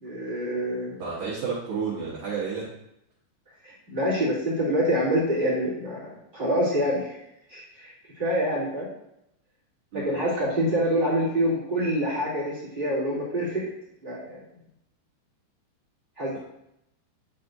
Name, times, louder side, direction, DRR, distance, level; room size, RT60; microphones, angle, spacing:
voice 1, 0.0-1.0 3.6-7.2 7.5-8.9 9.9-13.6 14.0-14.4 16.2-16.4, equal, 15° right, -9 dB, 1.7 m, -26 dB
voice 2, 1.0-2.7 9.9-10.2, right 5 dB, 65° right, -7 dB, 2.1 m, -31 dB
11.0 x 4.3 x 2.7 m, 0.81 s
omnidirectional pair, 5.6 m